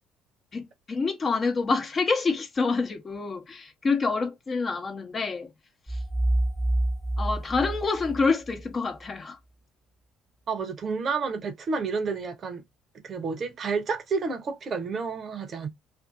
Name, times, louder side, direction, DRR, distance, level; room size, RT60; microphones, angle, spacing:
voice 1, 0.5-5.5 5.9-6.0 7.2-9.4, left 4 dB, 35° left, 0.9 m, -27 dB
sound 1, 5.9-8.7, right 1 dB, ahead, 0.7 m, -28 dB
voice 2, 10.5-12.6 13.0-15.7, right 4 dB, 45° right, 0.7 m, -30 dB
2.6 x 2.5 x 2.3 m
hypercardioid pair, 55°, 0 cm